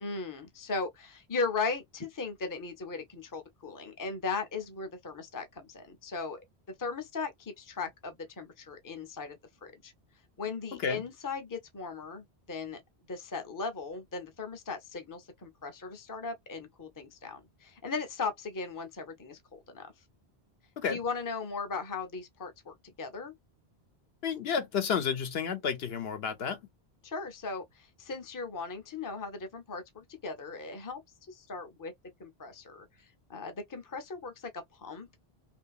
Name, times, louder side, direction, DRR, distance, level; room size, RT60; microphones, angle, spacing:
voice 1, 0.0-6.4 6.8-9.9 10.4-12.8 13.1-19.9 20.9-23.3 27.0-31.0 31.3-31.9 32.2-32.9 33.3-35.2, left 4 dB, 25° left, 0.6 m, -38 dB
voice 2, 24.2-26.6, left 6 dB, 75° left, 0.9 m, -31 dB
2.8 x 2.6 x 2.3 m
omnidirectional pair, 1.1 m